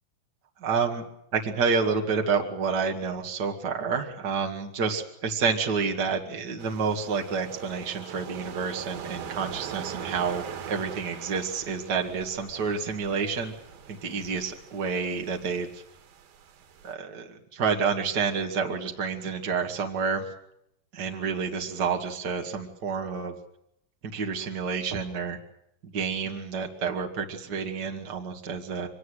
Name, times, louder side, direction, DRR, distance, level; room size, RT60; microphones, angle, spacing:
voice 1, 0.6-1.0 1.3-13.5 13.9-15.7 16.8-20.2 20.9-23.3 24.1-25.4 25.8-28.9, right 5 dB, 75° right, 3 dB, 0.9 m, -29 dB
sound 1, 6.6-16.9, right 8 dB, 60° right, 3.1 m, -42 dB
24.0 x 20.5 x 6.4 m, 0.76 s
omnidirectional pair, 5.6 m